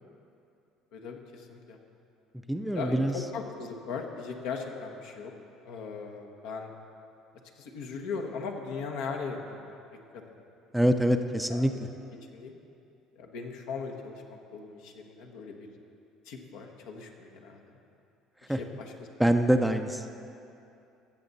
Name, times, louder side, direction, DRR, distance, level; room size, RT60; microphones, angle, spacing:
voice 1, 0.9-1.8 2.7-5.3 5.6-6.7 7.5-9.7 10.1-10.4 11.5-11.8 12.3-12.6 13.2-15.7 16.3-17.8 18.5-19.7, left 5 dB, 70° left, 2 dB, 1.1 m, -39 dB
voice 2, 2.5-3.1 10.7-11.7 18.5-18.6 19.2-20.0, right 1 dB, 5° right, 7 dB, 0.6 m, -24 dB
16.5 x 7.0 x 4.0 m, 2.7 s
hypercardioid pair, 65°, 0 cm